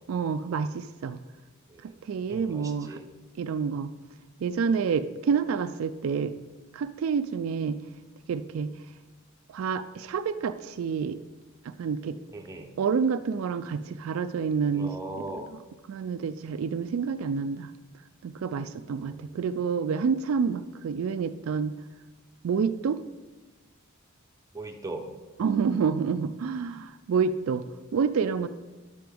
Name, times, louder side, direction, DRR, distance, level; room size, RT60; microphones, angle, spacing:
voice 1, 0.1-1.2 1.8-3.0 3.4-3.9 4.4-6.3 6.7-7.8 8.3-8.7 9.5-11.2 11.6-12.2 12.8-15.0 15.5-15.6 15.9-17.7 18.2-21.7 22.4-23.0 25.4-27.6 27.9-28.5, right 6 dB, 70° right, 11 dB, 0.3 m, -28 dB
voice 2, 2.3-3.0 12.3-12.7 14.7-15.4 19.0-19.4 24.5-25.0 25.4-25.5, right 2 dB, 15° right, 2 dB, 0.7 m, -39 dB
10.5 x 7.6 x 3.5 m, 1.2 s
head